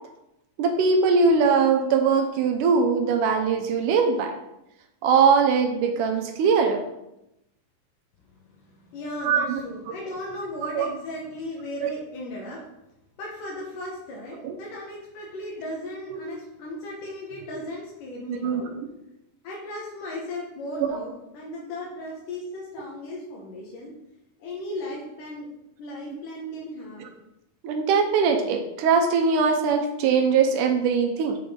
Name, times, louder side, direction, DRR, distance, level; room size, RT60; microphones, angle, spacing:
voice 1, 0.6-4.4 5.0-6.8 9.2-9.6 10.3-10.5 10.7-10.9 14.4-14.6 16.1-16.2 18.3-18.7 27.0-27.1 27.6-31.4, right 5 dB, 80° right, 5 dB, 2.1 m, -21 dB
voice 2, 8.7-12.6 13.2-18.7 19.4-23.9 24.4-25.5 25.8-27.1, left 1 dB, 80° left, -3 dB, 2.7 m, -36 dB
8.7 x 5.3 x 3.7 m, 0.88 s
omnidirectional pair, 3.8 m